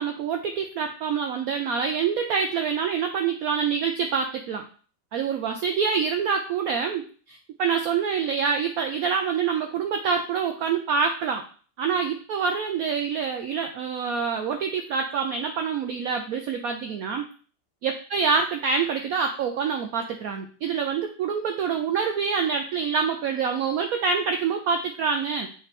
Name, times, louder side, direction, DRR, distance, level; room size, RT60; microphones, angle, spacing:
voice 1, 0.0-4.6 5.1-11.4 11.8-17.2 17.8-25.5, right 6 dB, 70° right, 5 dB, 0.9 m, -26 dB
7.9 x 3.3 x 4.1 m, 0.42 s
omnidirectional pair, 1.9 m